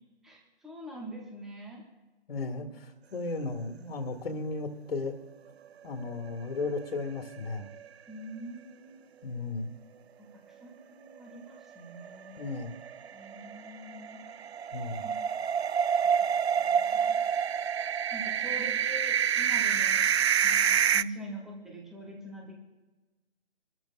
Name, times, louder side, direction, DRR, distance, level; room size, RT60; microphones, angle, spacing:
voice 1, 0.2-1.8 2.6-2.7 8.1-9.0 10.2-12.4 13.1-14.2 15.0-15.2 16.6-17.2 18.1-20.1 20.4-22.5, right 1 dB, ahead, -1 dB, 0.7 m, -44 dB
voice 2, 2.3-5.1 5.8-7.7 9.2-9.7 12.4-12.8 14.7-15.1, left 3 dB, 60° left, 4 dB, 1.9 m, -35 dB
sound 1, 6.1-7.0 7.3-7.4 7.8-7.9 12.0-21.0, right 8 dB, 65° right, 0.5 m, -27 dB
25.5 x 13.0 x 2.4 m, 1.2 s
figure-of-eight pair, 150°, 34 cm